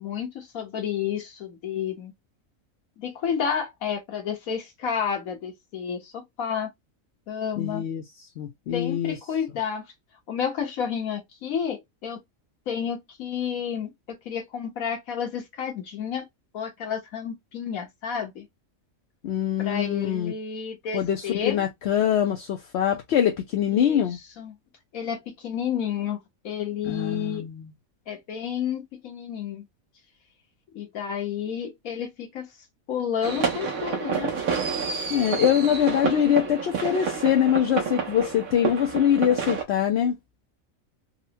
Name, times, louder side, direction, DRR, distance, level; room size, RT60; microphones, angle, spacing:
voice 1, 0.0-2.1 3.0-6.7 7.3-7.8 8.7-9.9 10.3-12.2 12.7-16.2 16.5-18.5 19.6-21.6 23.7-24.0 24.4-24.6 24.9-27.5 28.1-29.7 30.7-32.5 32.9-34.3, left 8 dB, 80° left, 1.4 m, -31 dB
voice 2, 7.6-8.0 8.4-9.2 19.2-20.3 20.9-24.2 26.8-27.7 35.1-40.2, left 10 dB, 65° left, 0.7 m, -23 dB
sound 1, 33.2-39.6, right 6 dB, 80° right, 1.3 m, -29 dB
4.0 x 2.1 x 2.7 m
omnidirectional pair, 1.4 m